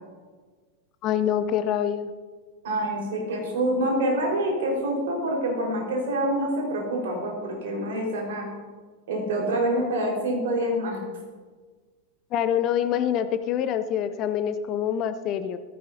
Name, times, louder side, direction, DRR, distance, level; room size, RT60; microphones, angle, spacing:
voice 1, 1.0-2.1 12.3-15.6, left 9 dB, 35° left, 11 dB, 0.7 m, -25 dB
voice 2, 2.6-8.5 9.1-11.0, right 1 dB, 55° right, -1 dB, 4.7 m, -26 dB
16.0 x 15.5 x 2.8 m, 1.4 s
figure-of-eight pair, 90°, 0 cm